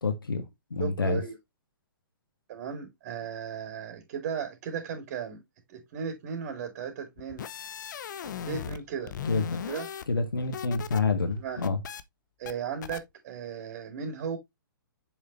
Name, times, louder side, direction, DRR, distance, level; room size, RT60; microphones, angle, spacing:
voice 1, 0.0-1.2 9.2-9.6 10.1-11.8, left 4 dB, 80° left, 1.6 m, -28 dB
voice 2, 0.8-1.4 2.5-5.4 5.7-7.5 8.5-9.1 9.7-9.9 11.4-11.6 12.4-14.4, right 7 dB, 45° right, 2.5 m, -36 dB
sound 1, 7.2-8.8 9.1-11.0 11.3-12.0 12.5-12.6 12.8-13.0, left 8 dB, 60° left, 0.8 m, -37 dB
7.2 x 5.7 x 3.0 m
figure-of-eight pair, 120°, 11 cm